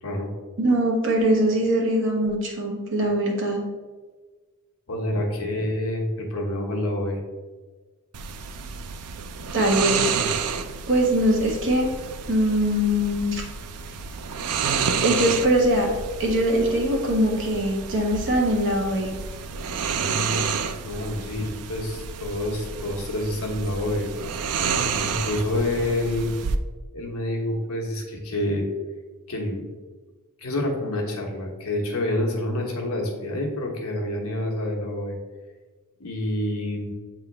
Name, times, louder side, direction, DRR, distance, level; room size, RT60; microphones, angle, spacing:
voice 1, 0.6-3.6 9.5-10.1 10.4-10.5 10.9-11.9 12.3-13.4 15.0-15.9 16.2-19.1, equal, 60° right, -1 dB, 1.4 m, -22 dB
voice 2, 4.9-7.2 20.8-24.1 24.4-24.5 25.0-26.3 26.9-28.6 29.3-29.6 30.4-35.2 36.0-36.9, left 1 dB, 70° left, 0 dB, 1.3 m, -27 dB
sound 1, 8.1-26.6, right 6 dB, 85° right, 0.5 m, -30 dB
8.0 x 3.7 x 3.3 m, 1.4 s
head